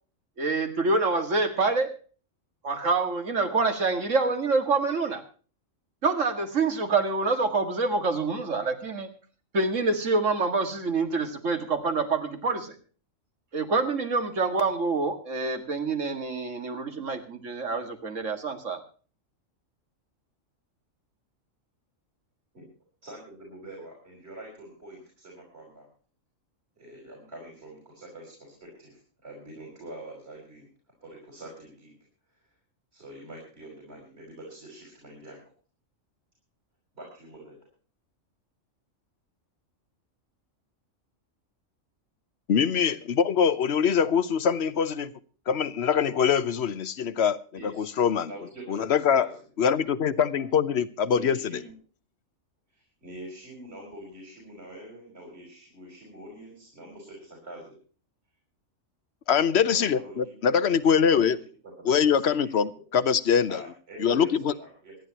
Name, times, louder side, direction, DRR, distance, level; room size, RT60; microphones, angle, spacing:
voice 1, 0.4-1.9 2.6-5.2 6.0-9.1 9.5-12.7 13.5-18.8, right 3 dB, 70° right, 7 dB, 2.3 m, -26 dB
voice 2, 23.0-25.9 26.8-30.7 31.0-31.9 32.9-35.4 37.0-37.6 47.6-49.3 50.4-50.5 51.1-51.7 53.0-57.7 59.7-60.3 60.8-61.3 61.8-62.3 63.5-65.0, right 1 dB, 50° right, -1 dB, 5.6 m, -45 dB
voice 3, 42.5-45.1 45.5-48.3 48.7-49.3 49.6-51.6 59.3-61.4 61.8-63.6 64.0-64.6, left 7 dB, 55° left, 15 dB, 1.1 m, -23 dB
25.5 x 11.0 x 2.9 m, 0.39 s
omnidirectional pair, 1.4 m